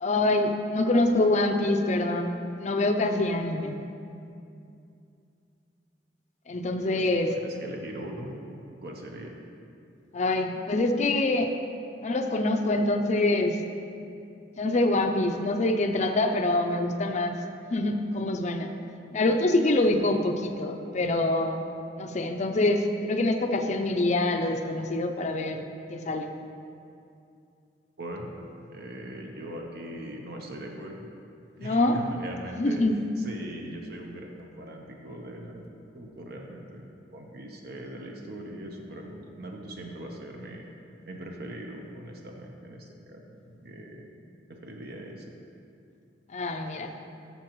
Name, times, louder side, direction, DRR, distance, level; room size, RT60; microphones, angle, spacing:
voice 1, 0.0-3.8 6.5-7.4 10.1-11.5 12.0-13.6 14.6-17.4 17.7-18.7 19.1-21.6 22.0-25.6 25.9-26.3 31.6-32.0 32.6-33.0 46.3-46.9, left 2 dB, 40° left, 5 dB, 0.5 m, -25 dB
voice 2, 7.0-8.5 8.8-9.3 28.0-28.3 28.7-31.1 31.6-32.8 33.2-35.7 35.9-36.8 37.1-40.6 41.1-44.1 44.5-45.3, right 1 dB, 60° right, 1 dB, 0.9 m, -40 dB
12.5 x 6.7 x 3.1 m, 2.5 s
head